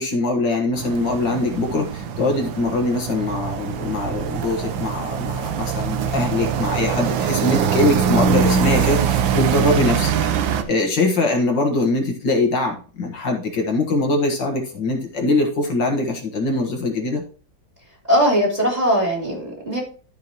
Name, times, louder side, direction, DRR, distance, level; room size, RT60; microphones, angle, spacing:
voice 1, 0.0-17.2, left 2 dB, 65° left, 1 dB, 2.1 m, -22 dB
sound 1, 0.8-10.6, right 7 dB, 80° right, 1.6 m, -23 dB
voice 2, 18.1-19.8, equal, 20° right, -2 dB, 3.3 m, -19 dB
13.0 x 5.1 x 3.0 m, 0.39 s
omnidirectional pair, 2.1 m